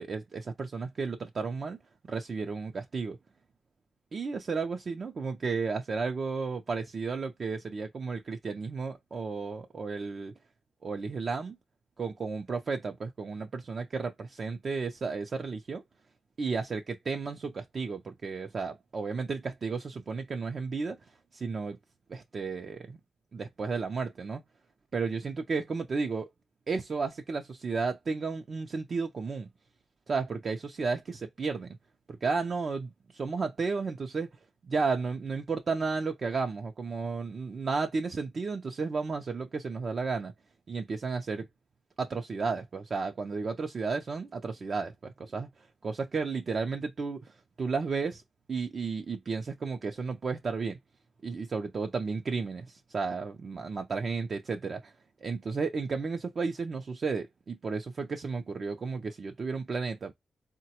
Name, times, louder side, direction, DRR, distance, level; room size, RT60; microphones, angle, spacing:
voice 1, 0.0-1.8 2.0-3.2 4.1-10.3 10.8-11.6 12.0-15.8 16.4-21.0 21.3-21.8 22.1-23.0 23.3-24.4 24.9-26.3 26.7-29.5 30.1-31.8 32.1-34.3 34.6-40.3 40.7-41.5 42.0-45.5 45.8-47.3 47.6-48.2 48.5-50.8 51.2-54.9 55.2-60.1, right 4 dB, 55° right, 0.5 m, -33 dB
3.8 x 2.2 x 2.8 m
supercardioid pair, 50°, 0 cm